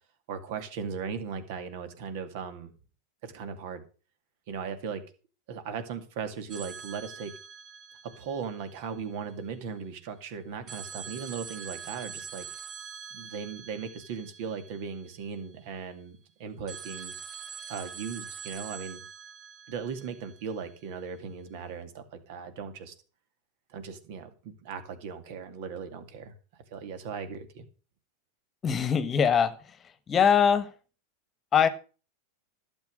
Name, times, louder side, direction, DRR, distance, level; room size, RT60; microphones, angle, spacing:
voice 1, 0.3-2.7 3.2-3.8 4.5-5.0 5.5-7.3 8.2-12.5 13.1-17.1 17.7-19.0 19.7-22.9 23.7-26.3 26.7-27.6, right 6 dB, 60° right, 9 dB, 2.3 m, -38 dB
sound 1, 6.5-9.4 10.7-15.6 16.7-20.9, right 7 dB, 35° right, 2.0 m, -44 dB
voice 2, 28.6-29.5 30.1-30.7 31.5-31.7, left 7 dB, 30° left, 14 dB, 1.2 m, -22 dB
12.0 x 7.3 x 6.3 m, 0.36 s
hypercardioid pair, 95°, 0 cm